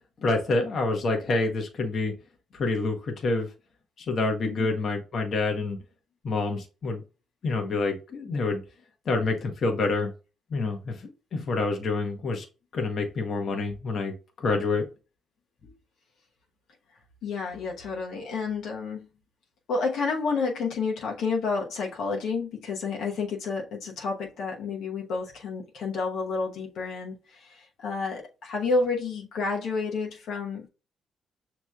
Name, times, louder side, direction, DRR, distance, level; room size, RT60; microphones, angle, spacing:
voice 1, 0.2-2.1 2.5-3.5 4.0-5.8 6.2-7.0 7.4-8.6 9.0-10.1 10.5-12.4 12.7-14.8 15.6-15.7, left 3 dB, 55° left, 1.1 m, -27 dB
voice 2, 17.2-19.1 19.7-30.7, left 4 dB, 75° left, 1.1 m, -30 dB
6.2 x 3.0 x 2.3 m
cardioid pair, 90°, 0 cm